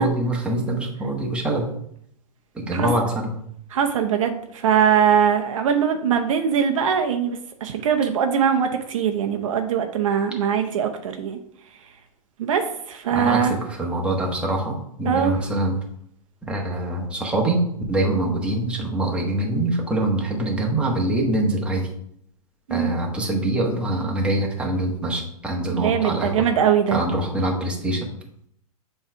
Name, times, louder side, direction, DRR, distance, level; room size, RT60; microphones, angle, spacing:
voice 1, 0.0-1.7 2.5-3.3 13.1-15.8 16.4-17.6 17.9-21.9 22.7-26.3 26.9-28.1, right 1 dB, 5° right, -1 dB, 1.3 m, -24 dB
voice 2, 3.7-11.4 12.4-12.6 12.9-13.5 15.1-15.3 22.7-23.0 25.7-27.0, right 8 dB, 60° right, 5 dB, 0.8 m, -21 dB
7.3 x 3.3 x 4.8 m, 0.70 s
hypercardioid pair, 115°, 19 cm